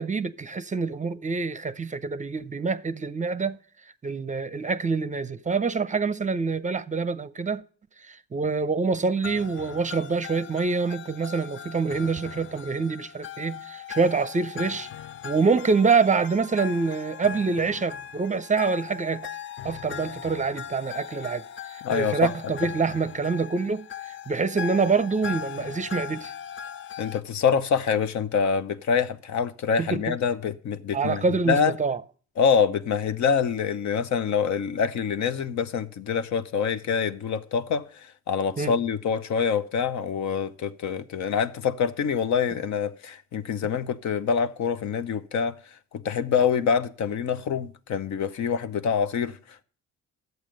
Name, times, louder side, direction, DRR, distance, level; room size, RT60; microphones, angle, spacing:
voice 1, 0.0-3.6 4.0-7.6 8.0-14.9 15.2-19.3 19.6-26.3 29.8-30.2 30.9-32.0 38.6-38.7, right 4 dB, 25° right, 0.6 m, -26 dB
sound 1, 9.2-27.2, left 8 dB, 40° left, 0.5 m, -39 dB
voice 2, 21.8-22.3 27.0-31.7 32.4-45.6 45.9-49.4, left 6 dB, 65° left, 0.9 m, -25 dB
11.0 x 8.0 x 5.1 m
cardioid pair, 90°, 30 cm